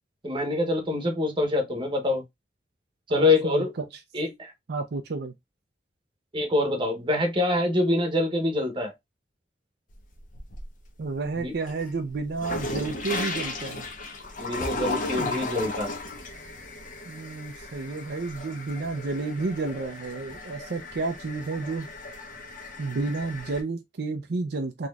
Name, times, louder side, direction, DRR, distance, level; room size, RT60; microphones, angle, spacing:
voice 1, 0.2-2.2 3.1-3.7 4.1-4.5 6.3-8.9 11.4-11.5 14.4-16.0, left 2 dB, 30° right, 1.0 m, -25 dB
voice 2, 3.1-3.8 4.7-5.3 11.0-13.9 15.1-15.4 17.0-21.9 22.8-24.9, right 3 dB, 65° right, 0.5 m, -31 dB
sound 1, 9.9-10.9 11.3-23.6, left 2 dB, 50° left, 0.9 m, -35 dB
3.9 x 3.0 x 2.3 m
head